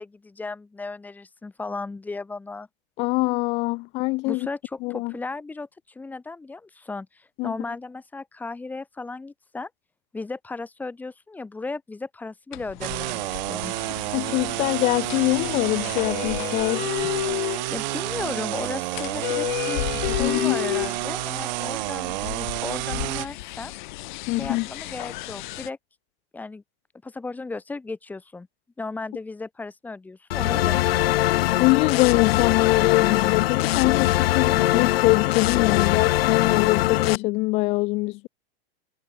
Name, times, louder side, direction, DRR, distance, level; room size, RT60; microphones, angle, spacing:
voice 1, 0.0-2.7 4.2-9.7 10.1-13.7 17.7-23.7 24.4-25.8 26.3-26.6 27.0-28.5 28.8-31.2, left 3 dB, 5° left, 2.0 m, -35 dB
voice 2, 3.0-4.5 4.8-5.1 7.4-7.5 14.1-16.9 20.1-20.6 24.3-24.7 31.6-38.3, left 23 dB, 20° left, 0.5 m, -23 dB
sound 1, 12.5-25.7, left 18 dB, 50° left, 4.7 m, -33 dB
sound 2, 12.8-23.3, right 19 dB, 50° right, 1.5 m, -30 dB
sound 3, 30.3-37.2, left 16 dB, 80° left, 0.6 m, -21 dB
supercardioid pair, 170°, 30 cm